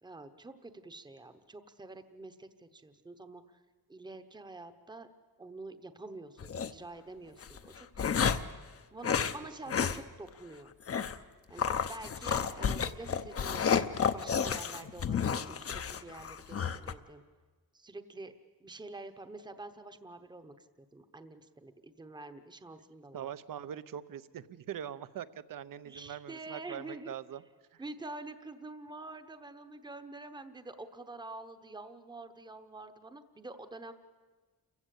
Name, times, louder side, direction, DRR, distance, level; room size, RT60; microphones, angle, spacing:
voice 1, 0.0-3.6 3.9-5.1 5.4-8.4 8.9-10.7 11.5-13.9 14.1-17.2 17.7-18.3 18.6-20.5 20.9-23.3 25.8-27.1 27.8-33.9, right 2 dB, 10° right, 10 dB, 0.9 m, -47 dB
sound 1, 6.4-6.7 7.4-8.6 9.0-9.4 9.7-10.0 10.3-10.4 10.9-11.2 11.6-16.9, left 7 dB, 40° left, 0.7 m, -31 dB
voice 2, 23.1-27.4 27.7-27.8, right 9 dB, 65° right, 15 dB, 0.8 m, -42 dB
29.0 x 15.5 x 8.3 m, 1.4 s
wide cardioid pair, 180°, 35 cm